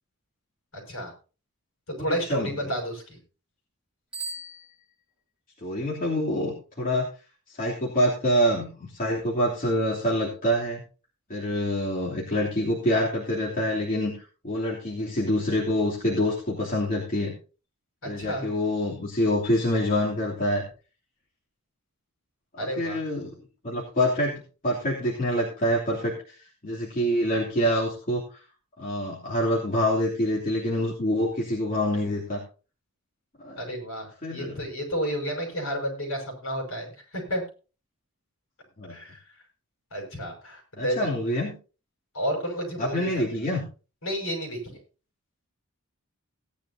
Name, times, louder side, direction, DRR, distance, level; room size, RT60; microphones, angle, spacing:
voice 1, 0.7-1.1 1.9-3.2 18.0-18.5 22.6-23.0 33.5-37.4 38.9-39.3 39.9-41.1 42.1-43.3 44.0-44.8, equal, 65° left, 1 dB, 6.4 m, -31 dB
voice 2, 2.0-2.7 5.6-7.1 7.5-10.8 11.3-14.1 14.4-17.3 18.0-20.6 22.5-23.3 23.6-26.4 26.6-28.4 28.8-32.4 33.4-33.6 34.2-34.6 38.8-39.0 40.8-41.5 42.8-43.6, equal, 40° left, -5 dB, 3.0 m, -26 dB
Bicycle bell, 4.1-5.4, right 3 dB, 5° right, 8.0 m, -39 dB
18.0 x 10.5 x 2.8 m, 0.34 s
head